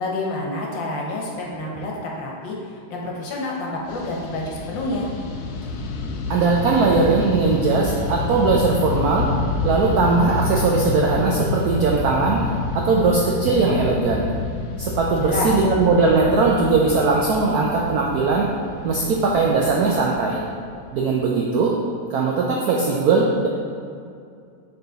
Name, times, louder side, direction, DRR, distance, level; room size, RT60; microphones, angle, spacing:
voice 1, 0.0-5.1 15.2-15.5, left 2 dB, 65° left, -2 dB, 1.6 m, -28 dB
Fixed-wing aircraft airplane, 3.9-21.3, left 3 dB, 85° left, 0.8 m, -29 dB
voice 2, 6.3-9.3 9.6-12.4 12.7-14.3 14.8-18.5 18.8-20.4 20.9-21.8 22.1-23.5, right 4 dB, 85° right, -2 dB, 0.8 m, -19 dB
6.7 x 4.0 x 3.9 m, 2.4 s
omnidirectional pair, 2.2 m